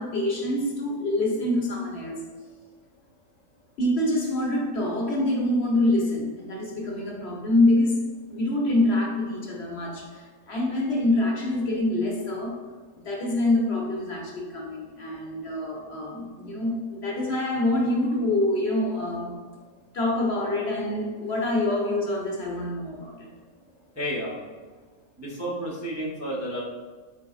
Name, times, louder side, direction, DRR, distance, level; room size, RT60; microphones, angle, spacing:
voice 1, 0.0-2.2 3.8-8.0 8.3-12.5 13.0-19.3 19.9-23.3, left 1 dB, 55° left, -2 dB, 0.9 m, -26 dB
voice 2, 23.9-24.4 25.2-26.6, equal, 20° right, -7 dB, 0.4 m, -31 dB
4.6 x 3.9 x 2.3 m, 1.4 s
omnidirectional pair, 1.5 m